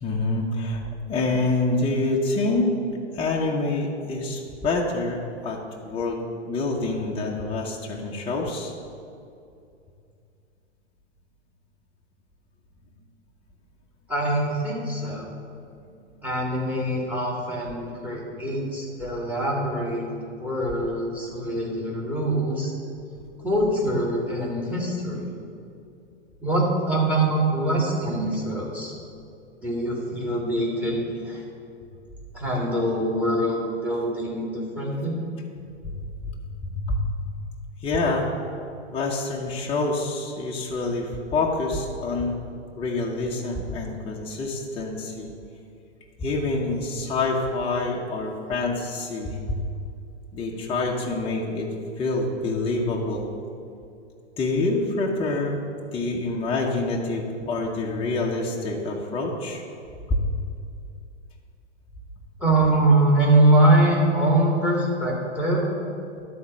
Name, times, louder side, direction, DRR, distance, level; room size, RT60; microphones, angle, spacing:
voice 1, 0.0-0.8 1.1-2.7 3.1-6.2 6.5-8.7 35.9-36.0 36.6-37.0 37.8-38.3 38.9-42.4 42.8-45.3 46.2-49.6 50.3-51.7 52.0-53.3 54.4-55.6 55.9-59.6 60.1-60.2, left 2 dB, 15° left, -2 dB, 0.9 m, -26 dB
voice 2, 14.1-15.2 16.2-20.1 20.4-22.7 23.4-25.3 26.4-28.9 29.6-31.4 32.3-35.2 62.4-65.7, right 1 dB, 5° right, -3 dB, 2.1 m, -23 dB
11.5 x 4.3 x 6.1 m, 2.5 s
figure-of-eight pair, 110°, 36 cm